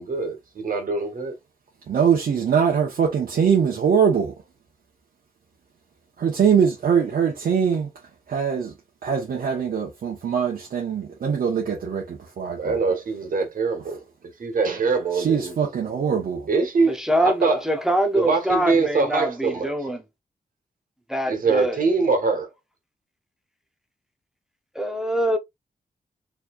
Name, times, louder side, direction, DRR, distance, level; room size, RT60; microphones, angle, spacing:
voice 1, 0.0-1.3 12.6-14.0 14.4-15.5 16.5-17.6 18.1-19.7 21.3-22.5, right 4 dB, 70° right, 1.6 m, -23 dB
voice 2, 1.9-4.3 6.2-7.9 8.3-8.7 9.0-12.8 15.1-16.5, right 7 dB, 90° right, 1.1 m, -22 dB
voice 3, 16.9-20.0 21.1-21.8 24.8-25.4, right 1 dB, 5° right, 0.8 m, -24 dB
4.8 x 3.3 x 2.5 m
wide cardioid pair, 100°, 15 cm